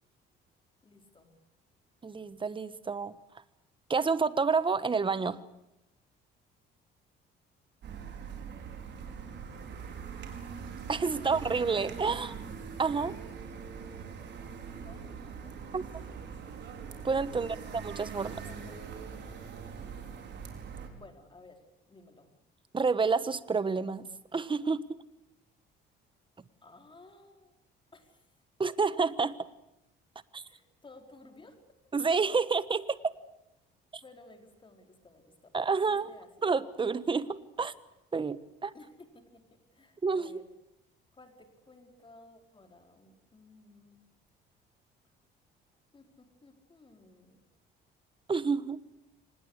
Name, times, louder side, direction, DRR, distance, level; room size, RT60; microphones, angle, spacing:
voice 1, 0.8-1.3 7.8-8.9 11.2-11.3 13.3-15.8 17.3-17.6 18.4-19.5 20.9-22.3 26.6-27.6 27.9-28.2 30.4-31.6 34.0-35.6 35.9-36.3 38.7-40.5 41.1-44.0 45.9-47.4, left 2 dB, 25° left, 4 dB, 4.8 m, -56 dB
voice 2, 2.0-3.1 3.9-5.4 10.9-12.3 12.8-13.2 15.7-15.8 17.0-18.4 22.7-24.1 24.3-25.0 28.6-29.4 30.3-30.4 31.9-33.1 35.5-36.1 36.4-37.7 38.1-38.7 40.0-40.4 48.3-48.8, right 4 dB, 25° right, 15 dB, 1.3 m, -29 dB
sound 1, 7.8-20.9, right 6 dB, 60° right, 5.1 m, -42 dB
25.5 x 20.0 x 8.2 m, 0.88 s
cardioid pair, 95°, 20 cm